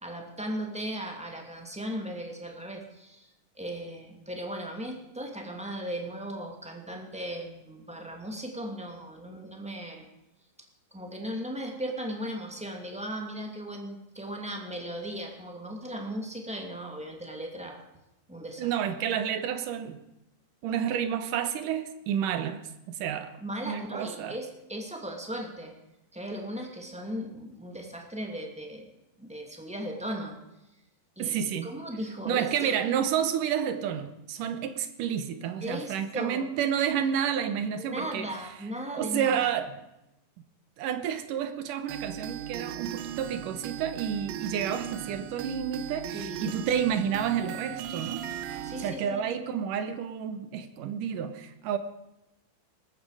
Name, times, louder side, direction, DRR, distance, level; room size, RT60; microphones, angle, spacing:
voice 1, 0.0-3.3 3.5-10.1 10.9-17.8 18.3-18.7 23.0-23.1 23.4-25.7 26.1-28.9 29.2-30.4 31.2-31.4 31.6-32.8 35.6-36.5 37.8-39.5 46.1-46.5 48.6-49.3, equal, ahead, 2 dB, 1.7 m, -37 dB
voice 2, 18.6-20.0 20.6-22.6 23.0-23.4 23.7-24.4 31.2-31.7 32.3-38.3 38.9-39.8 40.8-48.2 48.8-51.8, right 8 dB, 70° right, 10 dB, 2.6 m, -30 dB
sound 1, 41.9-48.9, right 10 dB, 90° right, 2.7 m, -37 dB
19.0 x 14.5 x 5.0 m, 0.91 s
omnidirectional pair, 4.0 m